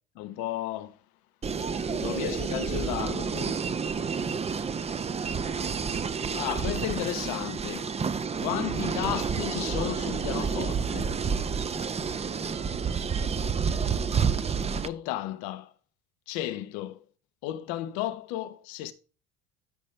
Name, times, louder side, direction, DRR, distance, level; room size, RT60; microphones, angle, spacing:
voice 1, 0.2-0.9 1.9-3.8 6.3-7.9 8.4-11.1 14.8-15.7 16.3-17.0 17.4-18.9, left 14 dB, 75° left, 1.1 m, -33 dB
sound 1, 1.4-14.9, right 6 dB, 20° right, 0.7 m, -29 dB
12.5 x 5.3 x 3.3 m
supercardioid pair, 95°, 30 cm